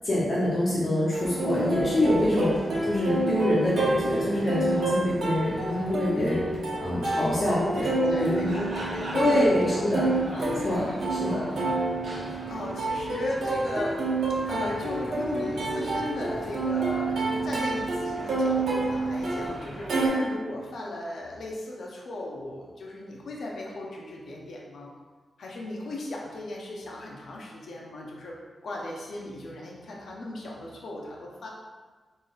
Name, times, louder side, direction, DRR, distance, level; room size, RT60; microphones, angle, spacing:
voice 1, 0.0-2.5 2.8-6.4 6.8-8.5 9.1-10.1 10.4-11.4, left 1 dB, 45° left, -8 dB, 0.9 m, -25 dB
Plucked string instrument, 1.1-20.1, right 2 dB, 85° right, 1.0 m, -29 dB
voice 2, 7.5-9.8 10.2-10.5 10.8-10.9 11.2-11.8 12.1-14.0 14.5-24.9 25.4-31.5, left 1 dB, 70° left, -2 dB, 0.7 m, -37 dB
3.9 x 3.8 x 2.5 m, 1.4 s
wide cardioid pair, 135°, 0 cm